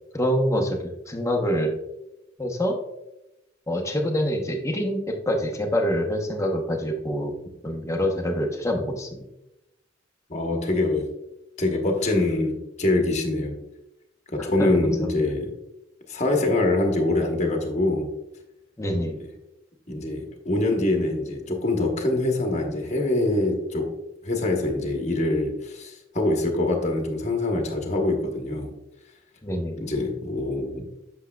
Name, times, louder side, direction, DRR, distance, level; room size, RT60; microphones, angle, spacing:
voice 1, 0.1-1.7 2.4-2.8 3.7-7.3 7.6-9.2 14.4-14.7 15.0-15.3 18.8-19.2 29.4-29.8, equal, 15° left, 2 dB, 0.8 m, -26 dB
voice 2, 10.3-11.1 11.6-13.6 14.3-15.5 16.1-18.1 19.0-19.2 19.9-23.9 24.2-28.7 29.8-30.9, left 2 dB, 35° left, 2 dB, 1.0 m, -24 dB
8.2 x 6.2 x 2.2 m, 0.91 s
head